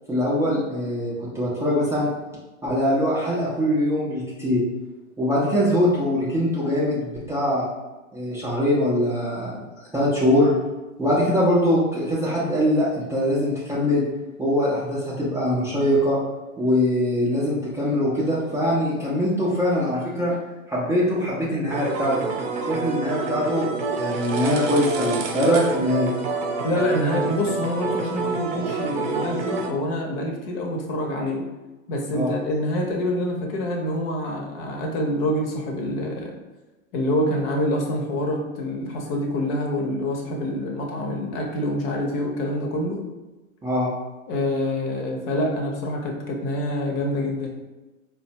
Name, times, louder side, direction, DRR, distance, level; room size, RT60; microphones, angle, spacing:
voice 1, 0.1-2.1 2.6-4.6 5.2-7.7 8.1-10.5 11.0-14.0 14.4-16.2 16.6-20.3 20.7-22.2 22.7-23.7 24.0-26.1 32.1-32.3 43.6-43.9, left 1 dB, 5° right, -8 dB, 0.5 m, -22 dB
sound 1, 21.7-29.7, right 4 dB, 45° right, 0.6 m, -28 dB
voice 2, 26.6-31.4 31.9-36.4 36.9-43.0 44.3-47.5, left 1 dB, 45° left, 1 dB, 0.9 m, -26 dB
4.0 x 2.2 x 2.8 m, 1.1 s
hypercardioid pair, 105°, 41 cm